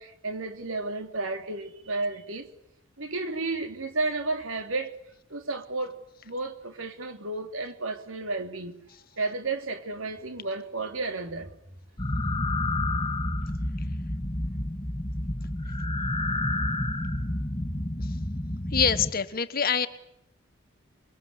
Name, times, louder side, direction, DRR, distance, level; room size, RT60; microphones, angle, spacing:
voice 1, 0.0-2.5 3.0-4.9 5.3-6.0 6.2-8.7 9.1-11.5, right 3 dB, 80° right, 3.3 m, -32 dB
sound 1, 12.0-19.1, left 1 dB, 25° left, 2.1 m, -29 dB
voice 2, 18.7-19.9, left 6 dB, 45° left, 1.4 m, -25 dB
25.5 x 23.5 x 8.3 m
head